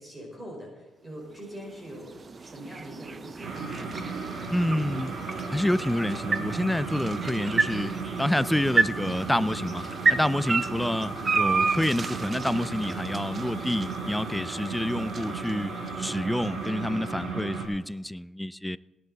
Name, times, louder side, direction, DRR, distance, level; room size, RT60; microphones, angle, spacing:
voice 1, 0.0-3.7, equal, 20° right, 4.4 m, -43 dB
sound 1, 1.2-17.4, right 4 dB, 35° right, 0.7 m, -32 dB
sound 2, 3.4-17.7, right 4 dB, 65° right, 3.0 m, -35 dB
voice 2, 4.5-5.1 5.5-7.9 8.2-9.8 10.1-18.8, left 1 dB, 5° left, 0.3 m, -28 dB
17.5 x 11.0 x 4.0 m
cardioid pair, 90°, 0 cm